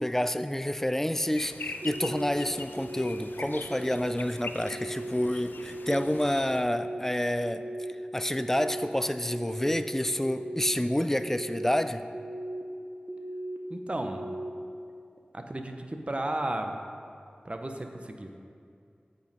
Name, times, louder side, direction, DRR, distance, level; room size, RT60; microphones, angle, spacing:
voice 1, 0.0-7.7 8.1-12.1, left 1 dB, 10° left, 11 dB, 0.3 m, -29 dB
sound 1, 1.3-6.6, left 3 dB, 90° left, 0.4 m, -42 dB
sound 2, 1.8-2.3 2.8-3.2 3.7-4.2 4.6-5.1 5.6-6.1 6.5-7.0 7.4-7.9 8.4-8.9 9.3-9.8 10.3-10.7 11.2-11.7 12.1-12.6 13.1-13.6 14.0-14.5, right 1 dB, 85° right, 0.7 m, -37 dB
voice 2, 13.7-14.2 15.3-16.8 17.4-18.3, right 1 dB, 35° right, 5 dB, 0.7 m, -34 dB
7.8 x 5.2 x 5.3 m, 2.4 s
wide cardioid pair, 55°, 3 cm